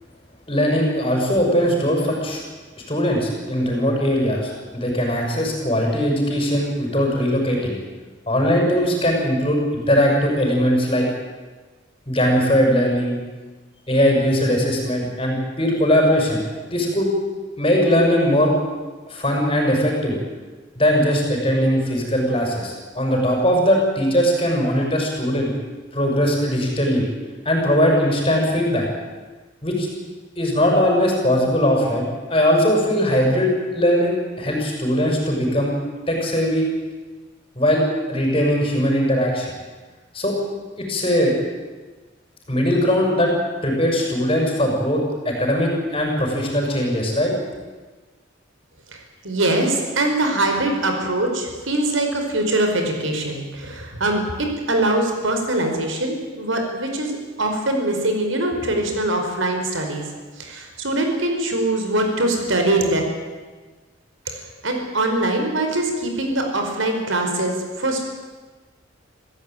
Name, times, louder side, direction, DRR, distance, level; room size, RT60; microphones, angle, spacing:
voice 1, 0.5-2.4 2.9-7.7 8.3-11.1 12.1-13.2 13.9-16.4 16.7-17.1 17.6-18.5 19.1-20.2 20.8-25.5 25.9-27.1 27.4-28.9 29.6-29.9 30.4-35.7 36.1-36.7 37.5-37.8 38.1-39.5 40.1-40.3 40.8-41.3 42.5-43.3 43.6-47.3, equal, 25° left, 0 dB, 6.2 m, -20 dB
voice 2, 49.2-60.1 60.4-63.0 64.3-68.0, right 1 dB, 80° right, 4 dB, 4.9 m, -22 dB
27.0 x 15.5 x 9.3 m, 1.3 s
head